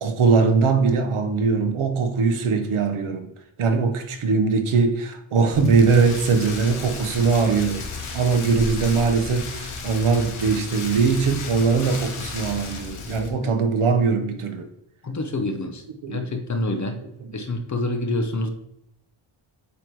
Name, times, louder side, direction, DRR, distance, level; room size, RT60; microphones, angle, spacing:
voice 1, 0.0-3.3 3.6-14.7 16.0-16.3 17.3-17.4, right 5 dB, 75° right, 1.0 m, -21 dB
Rain, 5.5-13.3, left 4 dB, 75° left, 1.3 m, -34 dB
voice 2, 15.0-15.8 16.1-17.0 17.3-18.5, left 2 dB, 35° left, 0.8 m, -27 dB
8.4 x 3.1 x 4.6 m
wide cardioid pair, 110°, 50 cm